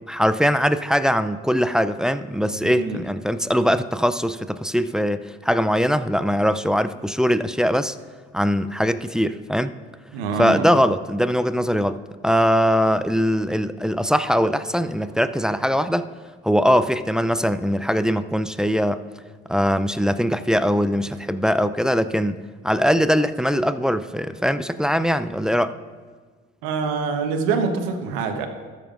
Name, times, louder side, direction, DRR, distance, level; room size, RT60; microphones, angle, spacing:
voice 1, 0.1-8.0 8.3-9.7 10.4-12.0 12.2-16.1 16.4-19.0 19.5-25.7, equal, ahead, 11 dB, 0.5 m, -21 dB
voice 2, 2.6-3.0 10.1-10.6 26.6-28.5, right 5 dB, 75° right, 6 dB, 1.2 m, -25 dB
18.5 x 7.3 x 2.6 m, 1.5 s
hypercardioid pair, 50°, 34 cm